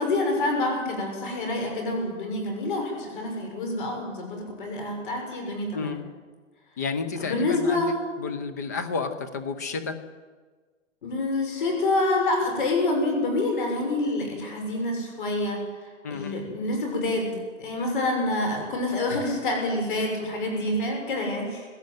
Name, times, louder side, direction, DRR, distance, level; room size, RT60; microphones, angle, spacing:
voice 1, 0.0-5.9 7.2-7.9 11.0-15.6 16.1-17.3 17.6-21.7, left 2 dB, 40° left, 2 dB, 6.4 m, -27 dB
voice 2, 6.8-10.0 16.0-16.5, left 4 dB, 15° left, 10 dB, 0.7 m, -31 dB
19.5 x 17.5 x 9.2 m, 1.4 s
hypercardioid pair, 175°, 39 cm